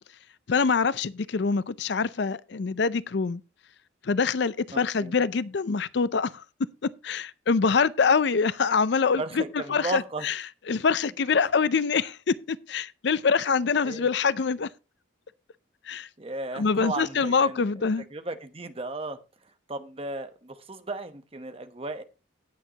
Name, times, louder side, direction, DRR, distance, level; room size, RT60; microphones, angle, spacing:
voice 1, 0.5-3.4 4.0-6.4 7.0-9.4 9.7-10.4 10.7-14.7 15.9-16.1 16.5-18.0, left 5 dB, 60° left, 0.5 m, -25 dB
voice 2, 4.7-5.1 9.2-10.2 13.8-14.1 16.2-17.6 18.1-19.2 19.7-22.0, right 2 dB, 30° right, 1.0 m, -35 dB
17.0 x 6.6 x 2.9 m
head